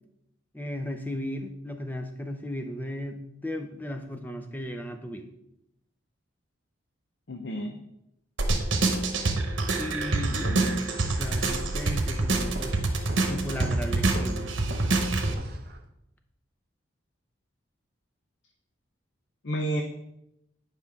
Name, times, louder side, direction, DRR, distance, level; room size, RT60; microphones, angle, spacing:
voice 1, 0.5-5.3 9.8-10.9 11.2-12.8 13.3-14.5, left 1 dB, 10° left, 6 dB, 0.6 m, -35 dB
voice 2, 7.3-7.8 10.3-11.0 19.4-19.8, right 1 dB, 60° left, 3 dB, 0.7 m, -32 dB
sound 1, 8.4-15.3, right 2 dB, 75° right, 1.0 m, -26 dB
Walk footsteps, 12.5-15.9, right 2 dB, 50° right, 0.6 m, -41 dB
9.6 x 5.3 x 3.5 m, 0.84 s
head